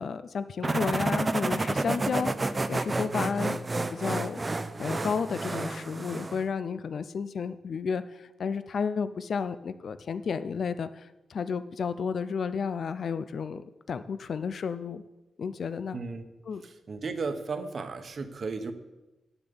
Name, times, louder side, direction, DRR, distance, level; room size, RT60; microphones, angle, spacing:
voice 1, 0.0-2.3 2.7-4.4 4.8-13.6 13.9-15.0 15.4-16.0 16.5-16.6, left 6 dB, 60° left, 13 dB, 0.4 m, -32 dB
sound 1, 0.6-6.4, right 2 dB, 25° right, 0.6 m, -30 dB
voice 2, 15.9-16.2 16.6-18.7, right 4 dB, 50° right, 8 dB, 1.1 m, -34 dB
10.5 x 6.9 x 7.0 m, 1.0 s
cardioid pair, 100°, 0 cm